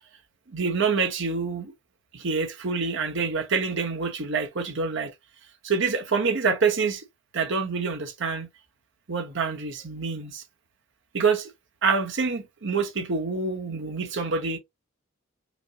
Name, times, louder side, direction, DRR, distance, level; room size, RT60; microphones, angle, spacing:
voice 1, 0.5-1.7 2.1-5.1 5.6-7.0 7.3-8.5 9.1-10.4 11.1-11.5 11.8-14.6, right 5 dB, 65° right, 1.0 m, -26 dB
5.1 x 2.1 x 2.8 m
head